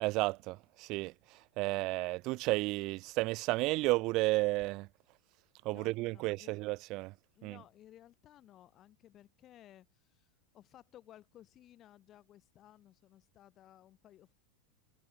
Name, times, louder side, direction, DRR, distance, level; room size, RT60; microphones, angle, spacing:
voice 1, 0.0-1.1 1.6-4.9 5.7-7.1 7.4-7.6, right 22 dB, 45° right, 0.3 m, -32 dB
voice 2, 5.6-6.5 7.4-14.3, left 12 dB, 35° left, 2.1 m, -59 dB
supercardioid pair, 135°, 0 cm